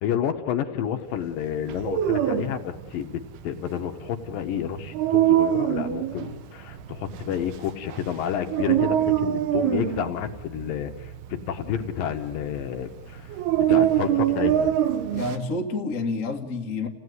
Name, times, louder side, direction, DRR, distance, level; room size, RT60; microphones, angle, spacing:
voice 1, 0.0-13.3 13.6-14.8, left 9 dB, 75° left, 6 dB, 2.4 m, -30 dB
Dog, 1.6-15.4, right 12 dB, 90° right, 3.1 m, -25 dB
voice 2, 15.1-16.9, left 3 dB, 35° left, 2 dB, 1.4 m, -29 dB
29.0 x 16.5 x 9.5 m, 1.3 s
omnidirectional pair, 4.4 m